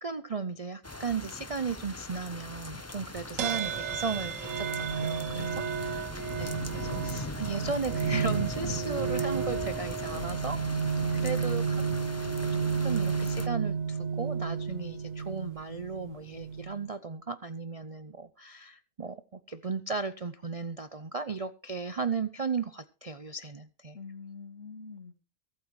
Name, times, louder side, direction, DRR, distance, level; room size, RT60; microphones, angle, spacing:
voice 1, 0.0-6.1 6.4-11.8 12.2-12.3 12.8-24.0, right 4 dB, 40° right, 0.5 m, -36 dB
sound 1, 0.8-13.5, left 2 dB, 15° left, 0.8 m, -40 dB
sound 2, 3.4-16.9, right 6 dB, 70° right, 1.2 m, -32 dB
voice 2, 5.3-5.8 23.9-25.2, left 5 dB, 60° left, 2.2 m, -45 dB
23.0 x 8.7 x 3.2 m
omnidirectional pair, 1.5 m